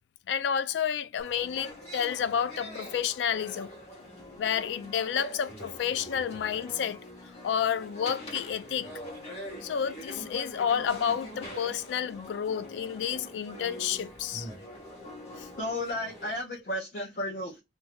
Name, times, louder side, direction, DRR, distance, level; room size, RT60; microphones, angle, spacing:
voice 1, 0.3-3.7 4.4-7.0 7.4-8.9 9.6-14.5 15.4-15.5, left 8 dB, 75° left, 0.3 m, -30 dB
sound 1, 1.2-16.4, equal, 35° left, 1.3 m, -43 dB
voice 2, 15.6-17.6, left 1 dB, 50° left, 0.7 m, -33 dB
2.6 x 2.3 x 3.3 m
head